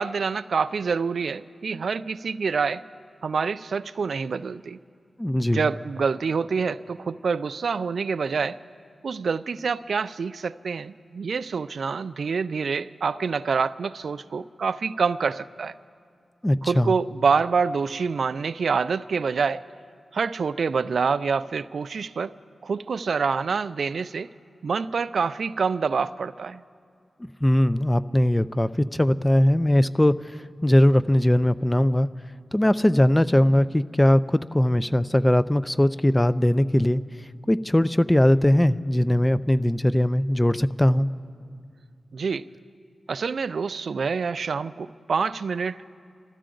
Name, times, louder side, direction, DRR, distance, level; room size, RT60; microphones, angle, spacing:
voice 1, 0.0-2.8 3.2-4.8 5.5-8.6 9.0-15.7 16.6-19.6 20.1-22.4 22.6-24.3 24.6-26.6 42.1-42.5 43.1-45.8, right 5 dB, 75° right, 16 dB, 0.3 m, -26 dB
voice 2, 5.2-5.7 16.4-16.9 27.4-30.1 30.6-32.1 32.5-37.0 37.5-41.1, left 1 dB, 15° left, 15 dB, 0.4 m, -20 dB
26.0 x 13.5 x 3.9 m, 2.2 s
cardioid pair, 60°, 0 cm